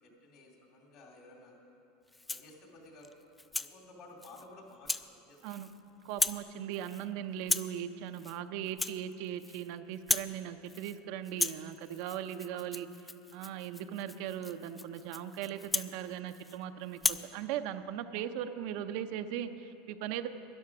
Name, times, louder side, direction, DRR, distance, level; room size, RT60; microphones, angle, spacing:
voice 1, 0.0-1.6 2.3-3.1 3.6-5.4, left 2 dB, 55° left, 0 dB, 2.7 m, -54 dB
Rattle (instrument), 2.1-2.5 3.0-3.7 4.2-4.4 4.8-5.1 5.4-5.8 6.1-6.5 6.7-7.0 7.4-7.8 8.1-8.4 8.7-9.7 9.9-10.4 10.7-11.0 11.2-16.6 16.9-17.3, left 3 dB, 10° left, 0.3 m, -36 dB
voice 2, 6.0-12.9 13.3-20.3, right 10 dB, 65° right, 9 dB, 0.5 m, -39 dB
12.0 x 10.5 x 6.0 m, 2.9 s
supercardioid pair, 120°, 0 cm